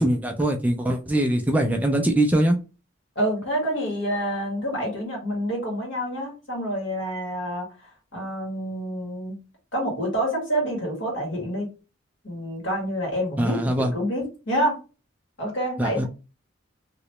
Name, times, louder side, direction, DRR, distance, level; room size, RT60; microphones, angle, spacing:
voice 1, 0.0-2.6 13.4-13.9 15.8-16.0, right 1 dB, 10° right, 3 dB, 0.3 m, -22 dB
voice 2, 3.2-7.7 8.1-9.4 9.7-11.7 12.2-14.8 15.4-16.1, equal, 65° left, -1 dB, 1.9 m, -27 dB
3.0 x 2.9 x 3.0 m, 0.31 s
head